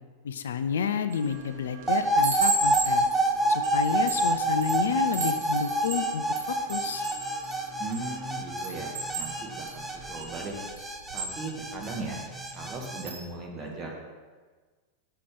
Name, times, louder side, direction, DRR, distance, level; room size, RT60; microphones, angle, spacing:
voice 1, 0.2-3.1 3.5-7.1, left 7 dB, 65° left, 10 dB, 0.4 m, -30 dB
Chime, 1.1-1.4 1.8-8.1 8.6-12.0 12.4-12.7 12.9-13.2, right 2 dB, 55° right, 1.4 m, -35 dB
sound 1, 1.1-10.6, right 3 dB, 75° right, 1.9 m, -50 dB
sound 2, 1.9-13.0, right 1 dB, 5° right, 0.6 m, -28 dB
voice 2, 7.8-10.6 11.1-12.2 12.5-13.9, right 3 dB, 25° right, 0 dB, 1.6 m, -38 dB
6.7 x 5.6 x 5.3 m, 1.4 s
figure-of-eight pair, 90°, 0 cm